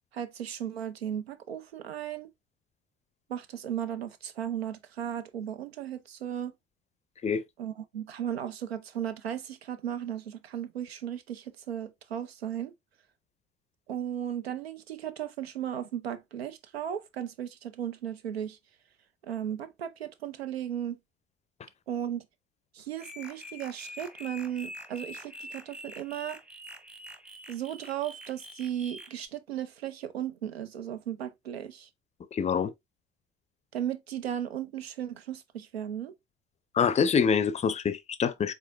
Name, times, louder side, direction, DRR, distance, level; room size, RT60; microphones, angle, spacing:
voice 1, 0.1-2.3 3.3-6.5 7.6-12.7 13.9-18.6 19.2-21.0 21.9-22.3 22.7-26.4 27.5-31.9 33.7-36.1, right 10 dB, 80° right, 0.5 m, -36 dB
sound 1, 23.0-29.3, left 1 dB, 5° right, 0.8 m, -45 dB
voice 2, 32.3-32.7 36.7-38.5, left 6 dB, 20° left, 0.5 m, -25 dB
4.8 x 3.6 x 2.5 m
figure-of-eight pair, 55°, 31 cm